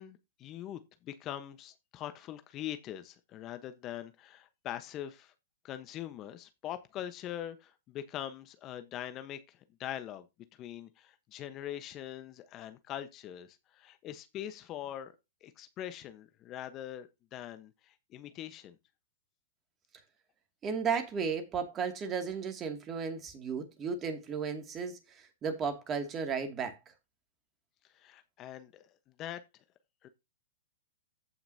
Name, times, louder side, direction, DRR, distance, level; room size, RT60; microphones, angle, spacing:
voice 1, 0.0-5.3 5.6-10.3 10.5-15.1 15.4-18.7 27.9-28.9 29.2-29.6 30.0-30.1, left 11 dB, 35° left, 1.1 m, -43 dB
voice 2, 20.6-26.8, right 6 dB, 25° right, 2.4 m, -34 dB
15.0 x 5.8 x 2.8 m
hypercardioid pair, 120°, 0 cm